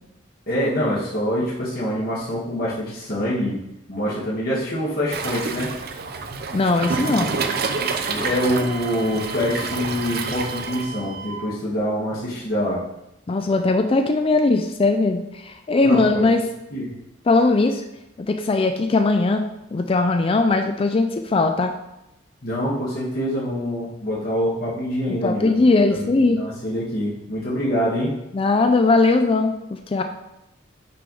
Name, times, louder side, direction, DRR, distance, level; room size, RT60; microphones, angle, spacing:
voice 1, 0.5-3.6 3.9-5.7 8.1-12.8 15.8-16.3 16.7-16.9 22.4-25.5 25.9-26.0 26.4-28.1, equal, 55° left, -7 dB, 1.7 m, -25 dB
Waves surf, 5.1-10.9, right 4 dB, 55° right, 0.6 m, -28 dB
voice 2, 6.5-7.4 13.3-16.4 17.3-17.8 18.2-19.4 19.7-21.7 25.1-26.4 28.3-29.6 29.9-30.0, left 3 dB, 30° left, 6 dB, 0.4 m, -19 dB
Wind instrument woodwind instrument, 6.8-11.5, right 5 dB, 20° right, 1.6 m, -36 dB
6.8 x 3.4 x 5.3 m, 0.88 s
head